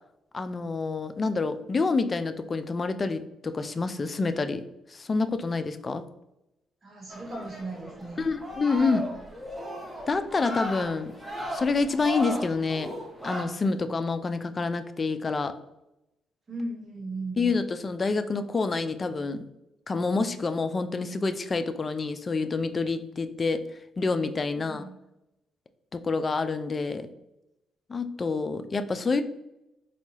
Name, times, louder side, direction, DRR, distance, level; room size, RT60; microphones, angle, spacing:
voice 1, 0.3-4.6 4.9-6.1 8.2-9.1 10.1-11.1 11.5-12.9 13.2-15.6 17.4-19.4 19.9-23.7 24.0-24.8 25.9-27.1 27.9-29.2, left 4 dB, 35° left, 10 dB, 0.3 m, -27 dB
voice 2, 6.8-8.3 16.5-17.6 24.5-24.9, right 2 dB, 35° right, 0 dB, 1.2 m, -37 dB
sound 1, 7.1-13.4, equal, ahead, 0.9 m, -36 dB
4.0 x 2.2 x 3.1 m, 0.89 s
cardioid pair, 90°, 0 cm